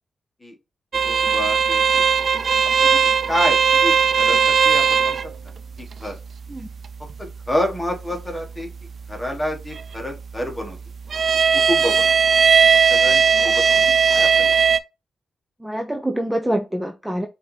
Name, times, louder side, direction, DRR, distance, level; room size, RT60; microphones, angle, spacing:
sound 1, 0.9-14.8, right 6 dB, 60° right, 0.3 m, -19 dB
voice 1, 1.1-2.0 2.8-5.2 5.4-6.2 7.2-8.7 9.1-10.8 11.5-12.2 12.9-14.6, left 1 dB, 15° left, 1.4 m, -29 dB
voice 2, 15.6-17.3, right 1 dB, 10° right, 0.5 m, -25 dB
5.5 x 2.7 x 3.2 m
cardioid pair, 70°, 0 cm